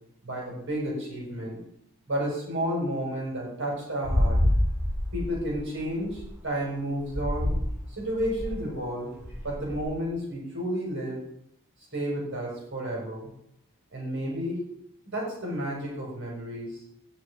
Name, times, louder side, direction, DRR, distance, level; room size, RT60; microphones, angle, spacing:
voice 1, 0.2-1.6 2.1-4.4 5.1-7.5 7.9-9.1 9.4-11.2 11.9-13.3 13.9-14.6 15.0-16.8, equal, 60° right, -2 dB, 5.0 m, -31 dB
sound 1, 4.0-6.2 7.0-7.7 8.1-8.6 9.2-9.8, left 1 dB, 15° right, 5.7 m, -27 dB
17.0 x 6.1 x 4.8 m, 0.72 s
head